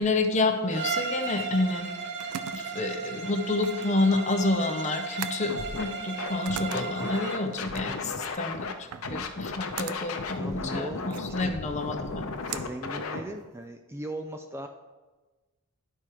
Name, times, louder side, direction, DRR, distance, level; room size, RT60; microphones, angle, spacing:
voice 1, 0.0-1.9 2.5-12.2, left 2 dB, 35° left, 6 dB, 0.7 m, -29 dB
Bowed string instrument, 0.7-7.5, right 4 dB, 55° right, 0.8 m, -35 dB
sound 1, 1.7-13.7, right 9 dB, 85° right, 0.4 m, -43 dB
Scratching (performance technique), 5.5-5.8 6.2-8.7 9.0-13.2, left 4 dB, 70° left, 0.7 m, -35 dB
voice 2, 8.9-9.5 10.4-11.5 12.5-14.7, right 1 dB, 10° right, 5 dB, 0.4 m, -39 dB
11.5 x 4.5 x 4.9 m, 1.2 s
head